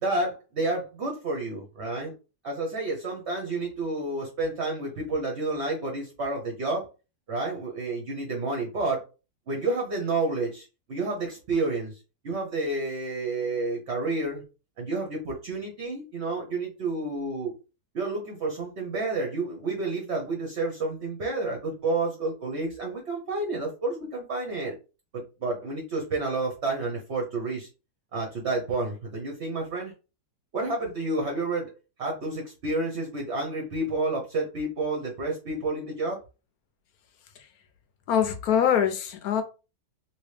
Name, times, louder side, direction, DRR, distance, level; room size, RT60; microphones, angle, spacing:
voice 1, 0.0-2.1 2.4-6.9 7.3-9.0 9.5-12.0 12.2-14.4 14.8-17.5 17.9-24.7 25.1-27.7 28.1-29.9 30.5-31.7 32.0-36.2, right 2 dB, 50° right, 0 dB, 1.0 m, -30 dB
voice 2, 38.1-39.4, left 8 dB, 70° left, 7 dB, 1.1 m, -23 dB
3.0 x 2.9 x 3.2 m, 0.31 s
omnidirectional pair, 1.8 m